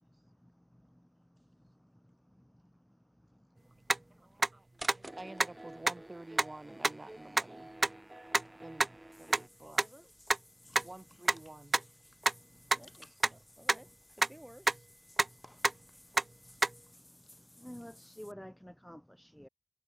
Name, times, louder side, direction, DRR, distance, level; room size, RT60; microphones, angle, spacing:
sound 1, 3.9-4.0 4.4-4.5 4.9-5.0 5.4-5.5 5.9-6.0 6.4-6.5 6.8-6.9 7.4-7.5 7.8-7.9 8.3-8.4 8.8-8.9 9.3-9.4 9.8-9.9 10.3-10.4 10.8-10.9 11.3-11.4 11.7-11.8 12.2-12.3 12.7-12.8 13.2-13.3 13.7-13.8 14.2-14.3 14.7-14.8 15.2-15.3 15.6-15.7 16.2-16.3 16.6-16.7, right 2 dB, 90° right, 0.4 m, -26 dB
voice 1, 4.1-4.7 4.9-7.7 8.6-8.9 9.2-9.8 10.8-11.8, right 2 dB, 65° right, 4.1 m, -49 dB
sound 2, 4.8-9.5, right 1 dB, 40° right, 1.6 m, -50 dB
Water / Bathtub (filling or washing), 9.1-18.3, left 1 dB, 40° left, 6.3 m, -60 dB
voice 2, 9.6-10.1 12.7-14.9 16.4-16.6, right 1 dB, 20° right, 4.8 m, -56 dB
voice 3, 17.6-19.5, equal, 10° left, 1.1 m, -48 dB
wide cardioid pair, 40°, 0 cm